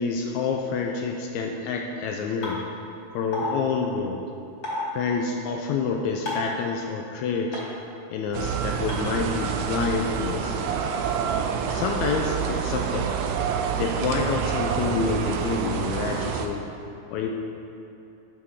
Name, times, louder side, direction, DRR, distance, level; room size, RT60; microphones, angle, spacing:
voice 1, 0.0-2.6 3.1-4.2 4.9-7.6 8.1-10.7 11.7-13.1 13.7-16.7 17.1-17.3, left 5 dB, 80° left, 2 dB, 1.7 m, -28 dB
sound 1, 2.4-2.5 3.3-3.5 4.6-4.8 6.3-6.5 7.5-7.6 8.9-9.0, left 2 dB, 30° left, 2.0 m, -29 dB
sound 2, 8.3-16.5, right 7 dB, 85° right, 2.2 m, -27 dB
11.0 x 5.7 x 3.7 m, 2.9 s
omnidirectional pair, 3.7 m